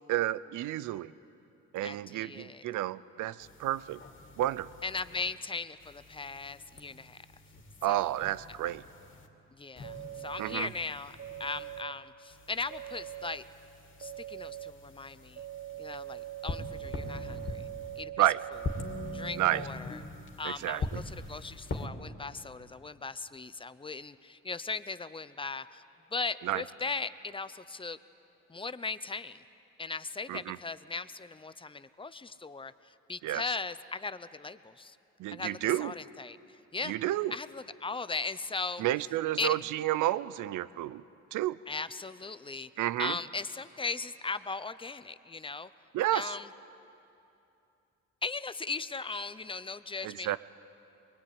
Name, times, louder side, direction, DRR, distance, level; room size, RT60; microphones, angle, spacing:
voice 1, 0.1-1.1 1.7-4.0 4.4-4.7 7.8-8.8 10.4-10.7 18.2-18.4 19.4-19.6 20.4-21.0 26.4-26.6 30.3-30.6 33.2-33.4 35.2-35.9 36.8-37.3 38.8-41.0 41.3-41.6 42.8-43.2 45.9-46.3 50.0-50.4, right 14 dB, 80° right, 17 dB, 0.6 m, -30 dB
voice 2, 1.8-2.6 4.8-7.2 7.9-8.1 9.5-13.4 14.0-15.4 15.8-17.7 18.0-18.1 19.1-20.0 20.4-25.8 26.1-28.0 28.5-29.4 29.8-35.0 35.3-37.0 37.3-38.8 39.4-39.6 41.7-42.7 43.0-45.7 46.1-46.5 48.2-50.4, left 4 dB, 15° left, 14 dB, 0.7 m, -38 dB
sound 1, 3.4-5.3 5.8-9.3 9.8-11.8 12.3-18.0 18.5-21.9, left 3 dB, 40° left, 2.6 m, -43 dB
sound 2, 9.8-10.6 11.2-11.9 12.7-13.4 14.0-14.7 15.4-19.7, right 13 dB, 40° right, 1.4 m, -42 dB
24.5 x 21.0 x 9.6 m, 2.8 s
cardioid pair, 90°, 30 cm